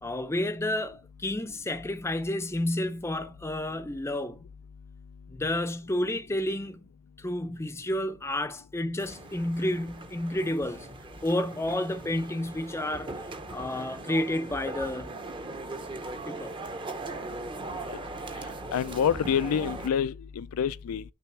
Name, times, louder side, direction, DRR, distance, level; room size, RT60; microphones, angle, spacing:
voice 1, 0.0-4.5 5.3-6.8 7.2-10.9 11.2-13.1 13.5-15.1 16.3-16.5, left 1 dB, 10° left, 0.5 m, -30 dB
sound 1, 9.0-19.9, right 2 dB, 20° right, 0.7 m, -39 dB
voice 2, 18.7-21.0, left 8 dB, 80° left, 0.3 m, -27 dB
6.0 x 3.4 x 5.8 m
head